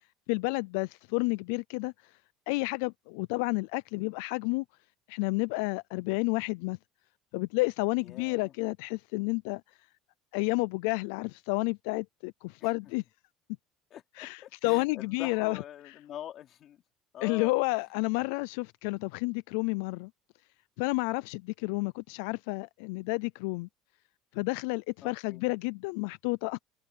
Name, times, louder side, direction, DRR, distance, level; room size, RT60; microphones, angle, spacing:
voice 1, 0.3-1.9 2.5-4.6 5.1-6.8 7.3-9.6 10.3-13.0 14.2-15.6 17.2-20.1 20.8-23.7 24.3-26.6, left 26 dB, 85° left, 0.4 m, -30 dB
voice 2, 8.0-8.5 12.6-12.7 13.9-16.8 17.1-17.6 25.0-25.4, left 11 dB, 45° left, 3.3 m, -44 dB
cardioid pair, 150°, 0 cm